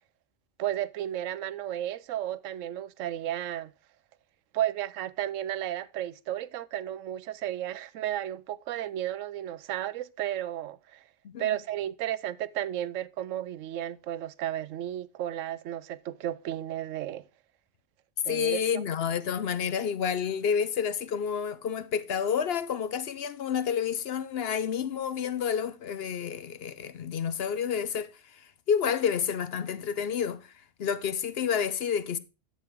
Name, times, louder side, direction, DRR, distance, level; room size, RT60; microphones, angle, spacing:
voice 1, 0.6-3.7 4.5-11.0 11.4-17.2 18.2-18.6, right 12 dB, 85° right, 1.0 m, -33 dB
voice 2, 11.2-11.6 18.3-28.1 28.7-30.4 30.8-32.2, left 7 dB, 60° left, 0.8 m, -29 dB
9.8 x 7.7 x 3.4 m
omnidirectional pair, 1.3 m